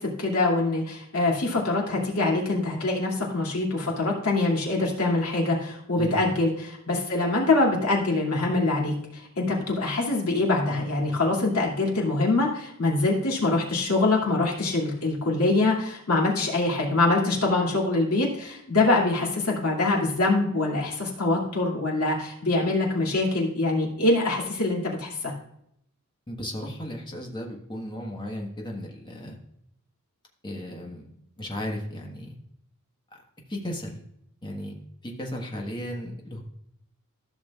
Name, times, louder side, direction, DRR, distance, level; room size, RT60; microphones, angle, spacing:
voice 1, 0.0-25.3, left 2 dB, 75° left, -2 dB, 2.5 m, -24 dB
voice 2, 26.3-29.4 30.4-31.1 31.4-32.4 33.1-33.2 33.5-34.0 34.4-34.7 35.0-36.4, equal, 20° left, 0 dB, 1.4 m, -35 dB
14.0 x 6.3 x 2.4 m, 0.74 s
head